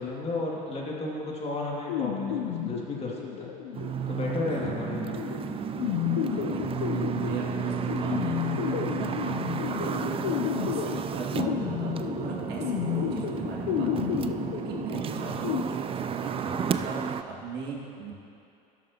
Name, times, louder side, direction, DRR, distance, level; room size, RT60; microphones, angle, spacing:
voice 1, 0.0-3.5 4.1-5.2 8.8-9.2, left 2 dB, 30° left, -3 dB, 2.4 m, -33 dB
sound 1, 1.9-15.6, left 10 dB, 80° left, 0.7 m, -32 dB
sound 2, 3.7-17.2, right 7 dB, 25° right, 0.4 m, -32 dB
voice 2, 6.2-9.4 9.6-18.1, right 4 dB, 55° right, -2 dB, 2.0 m, -39 dB
13.0 x 10.5 x 2.9 m, 2.6 s
hypercardioid pair, 75°, 21 cm